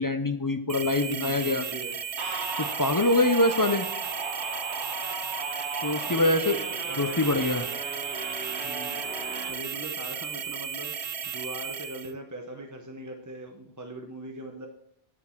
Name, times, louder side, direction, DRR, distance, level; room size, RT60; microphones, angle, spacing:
voice 1, 0.0-1.6 2.6-3.9 5.8-6.6 7.0-7.7, left 2 dB, 30° left, 7 dB, 0.4 m, -24 dB
sound 1, 0.7-12.1, right 7 dB, 50° right, 0.4 m, -35 dB
voice 2, 1.0-2.0 6.1-7.6 8.6-14.7, right 1 dB, 20° right, 3 dB, 0.9 m, -40 dB
sound 2, 2.2-9.5, right 3 dB, 85° right, 1.9 m, -36 dB
9.7 x 7.4 x 4.5 m, 0.76 s
omnidirectional pair, 1.1 m